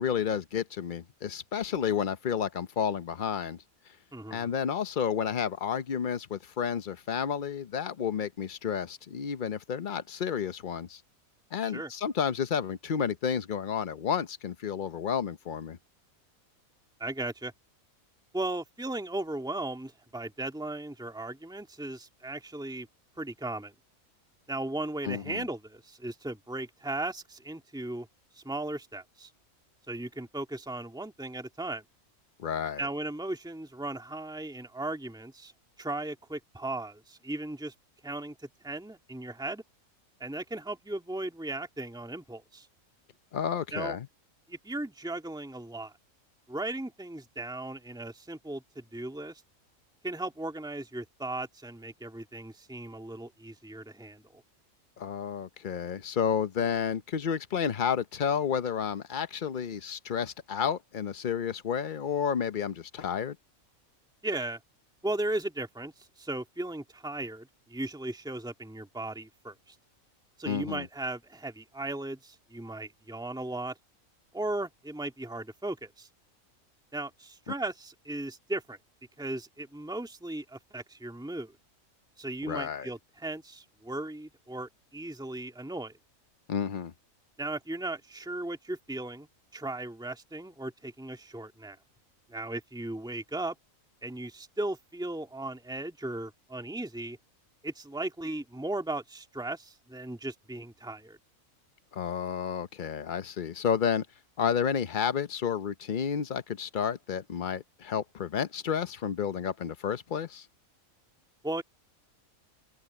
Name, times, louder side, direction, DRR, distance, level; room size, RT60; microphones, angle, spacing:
voice 1, 0.0-3.6 4.3-11.0 11.5-15.8 25.1-25.4 32.4-32.8 43.3-44.1 55.0-63.4 70.5-70.9 82.5-82.9 86.5-86.9 101.9-104.1 104.4-110.5, left 7 dB, 45° left, 0.8 m, -31 dB
voice 2, 4.1-4.5 11.6-11.9 17.0-17.5 18.3-22.9 23.2-23.7 24.5-28.1 28.3-29.3 29.9-31.8 32.8-35.5 35.8-37.7 38.0-38.3 38.6-39.6 40.2-42.7 43.7-44.0 44.5-45.9 46.5-49.4 50.0-54.4 64.2-64.6 65.0-69.8 70.4-73.7 74.3-76.1 76.9-78.8 79.2-81.5 82.2-85.9 87.4-89.3 89.5-91.8 92.3-93.6 94.0-97.2 97.6-101.2 111.4-111.6, right 2 dB, 5° right, 2.0 m, -36 dB
open air
omnidirectional pair, 1.4 m